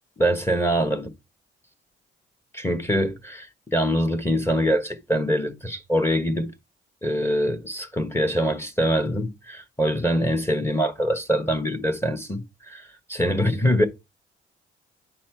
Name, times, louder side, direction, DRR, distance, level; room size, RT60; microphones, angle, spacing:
voice 1, 0.2-1.1 2.5-6.5 7.0-13.9, equal, 10° left, 1.2 m, -24 dB
9.9 x 4.3 x 4.5 m
cardioid pair, 90°, 20 cm